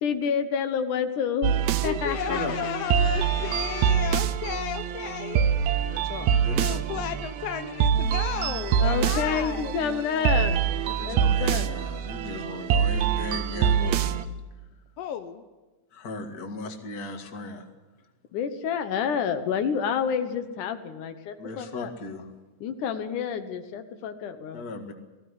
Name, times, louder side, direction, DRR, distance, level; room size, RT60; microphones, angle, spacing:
voice 1, 0.0-1.6 1.8-4.0 8.7-11.7 18.3-21.9 22.6-24.6, left 7 dB, 85° left, 9 dB, 2.8 m, -29 dB
sound 1, 1.4-14.2, right 8 dB, 75° right, 2.0 m, -25 dB
voice 2, 1.8-5.9 6.5-9.9 15.0-15.4, left 9 dB, 70° left, 8 dB, 1.7 m, -34 dB
voice 3, 5.9-7.1 10.8-14.1 15.9-17.7 21.4-22.3 24.5-24.9, left 2 dB, 35° left, 5 dB, 2.2 m, -37 dB
19.5 x 15.5 x 9.9 m, 1.2 s
omnidirectional pair, 3.5 m